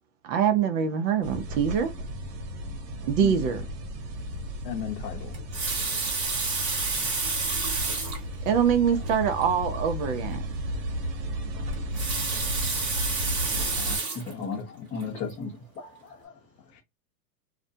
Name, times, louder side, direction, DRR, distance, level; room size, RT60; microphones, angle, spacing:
voice 1, 0.2-1.9 3.1-3.7 8.4-10.4, right 7 dB, 50° right, 0.6 m, -24 dB
sound 1, 1.2-14.0, right 1 dB, 90° right, 0.9 m, -34 dB
voice 2, 3.2-3.5 4.6-5.4 8.9-9.0 13.5-14.9 16.7-16.8, left 10 dB, 80° left, 0.7 m, -38 dB
Water tap faucet, 5.3-8.3 9.0-9.1 9.4-9.5 11.7-14.3 15.0-15.2, right 3 dB, 30° right, 1.2 m, -29 dB
voice 3, 13.8-14.6 14.9-16.3, left 5 dB, 15° left, 0.5 m, -36 dB
2.4 x 2.1 x 2.6 m
supercardioid pair, 140°, 49 cm